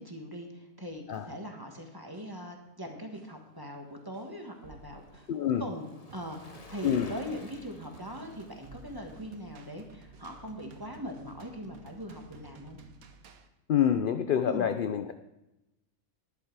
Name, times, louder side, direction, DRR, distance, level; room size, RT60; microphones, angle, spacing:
voice 1, 0.0-5.3 5.6-5.9 6.1-12.8 14.4-14.7, equal, 15° right, 3 dB, 1.5 m, -41 dB
sound 1, 1.1-1.5 2.1-2.5 3.1-3.5 4.1-5.5 6.1-6.5 7.1-7.5 8.1-9.5 10.1-10.5 11.1-11.5 12.1-12.5, right 2 dB, 50° right, 1.6 m, -59 dB
Bicycle, 3.0-11.4 11.7-11.8, left 3 dB, 30° left, 0.9 m, -56 dB
voice 2, 5.3-5.6 6.8-7.1 13.7-15.1, left 9 dB, 65° left, 9 dB, 0.5 m, -27 dB
sound 2, 6.1-13.5, right 5 dB, 85° right, 1.4 m, -53 dB
11.5 x 11.0 x 4.7 m, 0.94 s
omnidirectional pair, 1.5 m